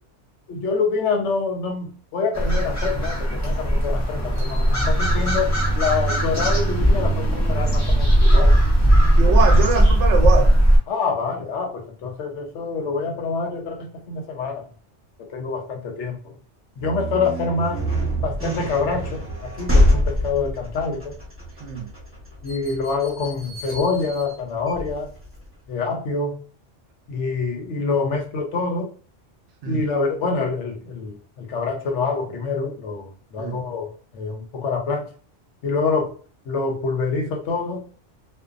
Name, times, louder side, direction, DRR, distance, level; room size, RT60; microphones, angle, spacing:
voice 1, 0.5-8.6 10.9-14.6 15.2-16.4 16.8-17.8 18.2-21.2 22.4-25.1 25.7-26.4 27.1-28.9 29.7-35.1 35.6-36.2 36.5-37.9, left 4 dB, 75° left, 1.0 m, -26 dB
sound 1, 2.3-10.8, right 1 dB, 25° left, 0.4 m, -18 dB
voice 2, 9.2-10.5 21.6-21.9 29.6-29.8 33.4-33.6, right 6 dB, 75° right, 0.9 m, -23 dB
sound 2, 16.8-25.5, equal, 10° right, 1.0 m, -25 dB
2.6 x 2.1 x 2.4 m
omnidirectional pair, 1.2 m